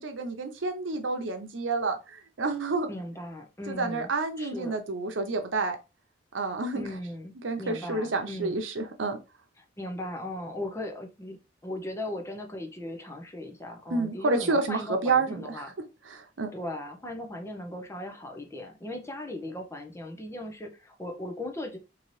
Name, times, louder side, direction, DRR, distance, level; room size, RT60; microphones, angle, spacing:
voice 1, 0.0-2.9 3.7-5.8 6.3-6.8 7.4-9.2 13.9-15.4 16.1-16.5, right 3 dB, 85° right, 5 dB, 0.8 m, -29 dB
voice 2, 2.9-4.1 4.4-4.8 6.7-8.6 9.6-11.4 11.6-15.7 16.5-21.8, left 1 dB, 15° left, 4 dB, 0.6 m, -38 dB
3.9 x 2.8 x 3.1 m, 0.29 s
head